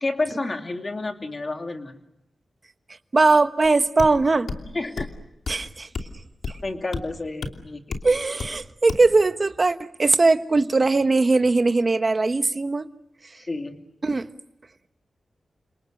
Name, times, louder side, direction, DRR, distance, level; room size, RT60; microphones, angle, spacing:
voice 1, 0.0-2.0 4.7-5.1 6.6-7.9 13.4-13.8, left 2 dB, 30° left, 4 dB, 2.7 m, -30 dB
voice 2, 3.1-4.5 5.5-5.9 8.0-12.8 14.0-14.3, right 3 dB, 35° right, 9 dB, 1.2 m, -20 dB
sound 1, 3.6-3.7 4.0-4.2 4.5-4.6 5.0-5.2 5.5-5.6 5.9-6.1 6.4-6.6 6.9-7.0 7.4-7.5 7.9-8.1 8.4-8.6 8.9-9.1, left 4 dB, 85° left, 2.8 m, -31 dB
30.0 x 27.0 x 6.6 m, 0.87 s
wide cardioid pair, 145°, 0 cm